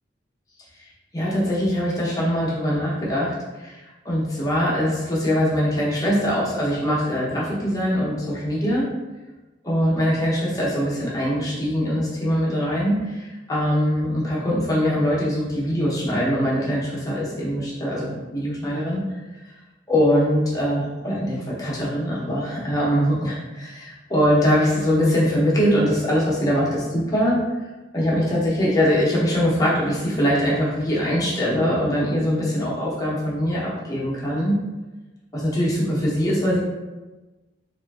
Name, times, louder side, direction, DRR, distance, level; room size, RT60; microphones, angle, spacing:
voice 1, 1.1-8.8 9.6-19.0 19.5-19.6 19.9-27.4 27.9-34.6 35.3-36.6, equal, 20° left, -6 dB, 0.6 m, -22 dB
2.9 x 2.3 x 2.3 m, 1.2 s
head